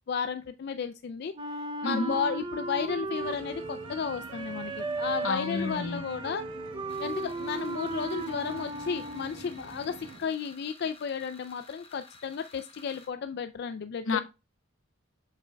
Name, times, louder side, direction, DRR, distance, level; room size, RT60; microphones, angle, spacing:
voice 1, 0.1-1.3 1.8-6.4 7.0-14.2, left 6 dB, 55° left, 0.3 m, -33 dB
Wind instrument woodwind instrument, 1.3-9.5, right 3 dB, 25° right, 0.5 m, -36 dB
voice 2, 1.8-2.2 5.2-6.0 14.0-14.2, left 3 dB, 75° left, 0.7 m, -30 dB
sound 1, 2.0-10.2, right 3 dB, 70° right, 1.2 m, -47 dB
sound 2, 6.9-13.1, left 3 dB, 30° left, 1.0 m, -54 dB
7.4 x 5.8 x 2.2 m
head